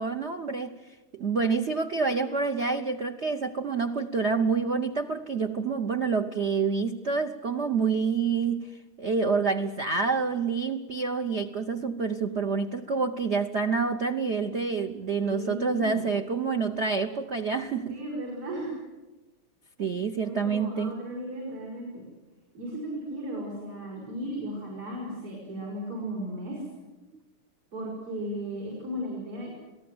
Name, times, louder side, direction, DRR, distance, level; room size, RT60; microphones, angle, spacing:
voice 1, 0.0-18.0 19.8-20.9, right 5 dB, 55° right, 0.8 m, -28 dB
voice 2, 15.2-16.0 17.9-18.8 20.2-22.0 22.5-26.6 27.7-29.5, right 1 dB, 75° right, 7.0 m, -35 dB
29.0 x 18.5 x 7.9 m
omnidirectional pair, 2.4 m